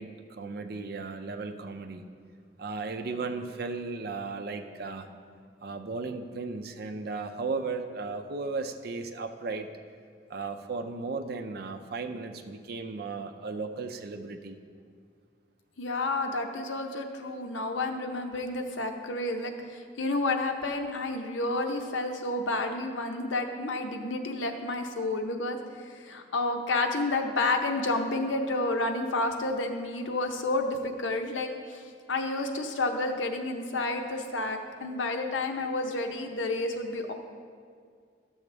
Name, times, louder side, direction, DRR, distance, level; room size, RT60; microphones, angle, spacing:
voice 1, 0.0-2.1 2.6-5.1 5.6-9.7 10.3-14.6, right 4 dB, 55° right, 7 dB, 0.5 m, -35 dB
voice 2, 15.8-31.8 32.1-37.1, left 2 dB, 85° left, 4 dB, 0.8 m, -30 dB
12.0 x 7.1 x 3.3 m, 2.1 s
head